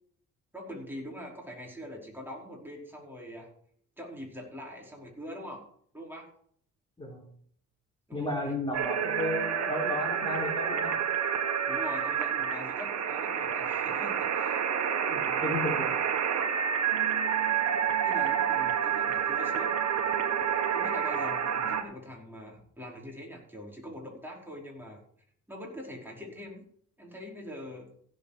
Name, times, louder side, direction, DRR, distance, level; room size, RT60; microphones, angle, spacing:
voice 1, 0.5-3.5 4.0-5.6 5.9-6.3 8.1-8.5 11.6-14.6 18.0-19.8 20.7-25.0 25.5-26.6 27.0-27.9, equal, 5° right, -2 dB, 5.1 m, -43 dB
voice 2, 8.1-11.0 15.1-15.9, left 1 dB, 15° left, -2 dB, 3.7 m, -33 dB
sound 1, 8.7-21.8, right 8 dB, 60° right, 1.9 m, -29 dB
16.0 x 7.9 x 5.1 m, 0.62 s
cardioid pair, 90°, 30 cm